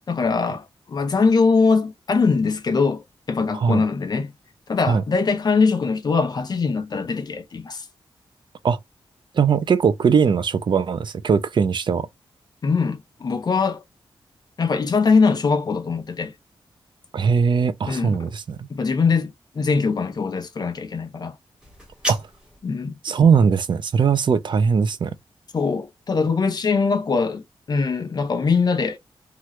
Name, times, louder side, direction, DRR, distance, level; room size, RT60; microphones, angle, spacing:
voice 1, 0.1-4.3 4.7-7.9 12.6-13.8 14.6-16.3 17.9-18.3 18.7-21.4 22.6-23.0 25.5-29.0, left 4 dB, 45° left, 0.7 m, -22 dB
voice 2, 9.3-12.1 17.1-18.7 22.1-22.3 23.0-25.1, right 6 dB, 55° right, 0.4 m, -20 dB
sound 1, 21.6-22.6, equal, 10° right, 1.3 m, -31 dB
3.0 x 2.3 x 3.1 m
wide cardioid pair, 125°, 10 cm